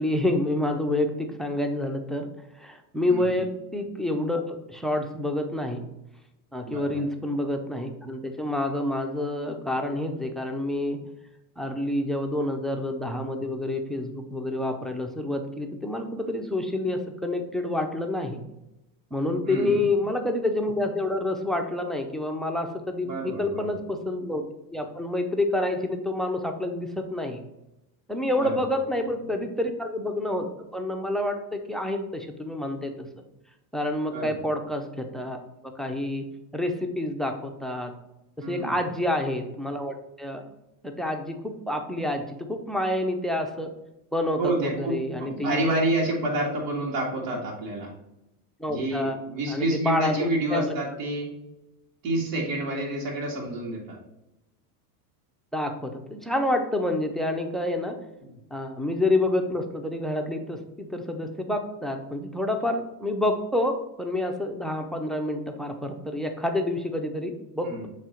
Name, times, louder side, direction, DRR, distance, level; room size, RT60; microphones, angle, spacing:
voice 1, 0.0-2.3 2.6-5.8 6.5-11.0 11.6-18.4 19.1-24.4 24.7-27.4 28.1-33.1 33.7-36.3 36.5-37.9 38.5-40.4 40.8-43.7 44.1-45.6 48.6-49.2 49.5-50.8 55.5-58.0 58.5-67.9, left 1 dB, ahead, 5 dB, 0.5 m, -28 dB
voice 2, 6.7-7.1 19.5-19.9 23.0-23.7 28.4-28.5 34.1-34.4 38.4-38.8 44.4-47.9 48.7-51.3 52.0-54.0 58.2-58.3 67.6-67.9, right 1 dB, 70° right, -2 dB, 2.3 m, -28 dB
7.3 x 3.0 x 4.4 m, 0.92 s
supercardioid pair, 110°, 49 cm